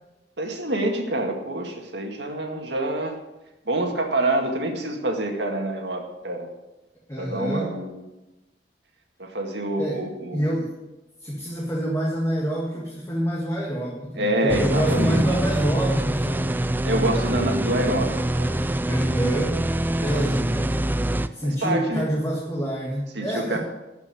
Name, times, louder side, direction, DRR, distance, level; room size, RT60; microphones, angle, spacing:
voice 1, 0.4-3.1 3.7-6.5 7.2-7.9 9.2-10.5 14.2-15.2 16.8-18.6 20.0-20.2 21.4-22.0 23.2-23.6, right 1 dB, 70° right, 2 dB, 2.0 m, -26 dB
voice 2, 7.1-7.7 9.8-10.0 10.3-10.8 11.2-16.8 18.8-19.6 20.0-20.8 21.3-23.6, right 1 dB, 15° left, -3 dB, 1.8 m, -27 dB
sound 1, 14.5-21.3, right 1 dB, 10° right, 0.4 m, -25 dB
12.5 x 5.8 x 8.5 m, 1.0 s
head